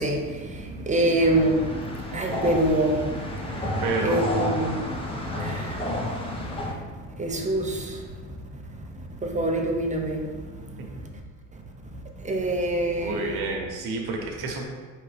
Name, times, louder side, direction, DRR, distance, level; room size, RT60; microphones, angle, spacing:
voice 1, 0.0-3.7 4.0-5.8 6.6-6.7 7.2-8.0 9.2-10.2 12.2-13.2, right 1 dB, 20° right, 2 dB, 0.7 m, -26 dB
sound 1, 1.2-6.7, left 1 dB, 15° left, 0.9 m, -31 dB
voice 2, 3.8-4.2 13.0-14.6, right 3 dB, 65° right, 1 dB, 1.1 m, -29 dB
4.6 x 3.3 x 3.3 m, 1.5 s
supercardioid pair, 75°, 41 cm